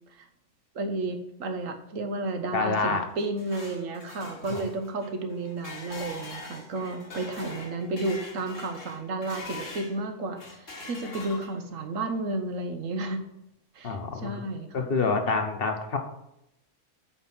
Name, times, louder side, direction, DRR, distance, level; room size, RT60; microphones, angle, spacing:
voice 1, 0.7-13.2 13.7-14.9, right 2 dB, 85° right, 7 dB, 1.4 m, -32 dB
voice 2, 2.5-3.0 4.5-4.6 13.8-14.3 14.7-16.0, left 4 dB, 50° left, 5 dB, 1.2 m, -27 dB
sound 1, 3.0-10.0 10.4-11.8, left 2 dB, 75° left, 2.1 m, -42 dB
8.5 x 4.7 x 6.1 m, 0.83 s
omnidirectional pair, 1.3 m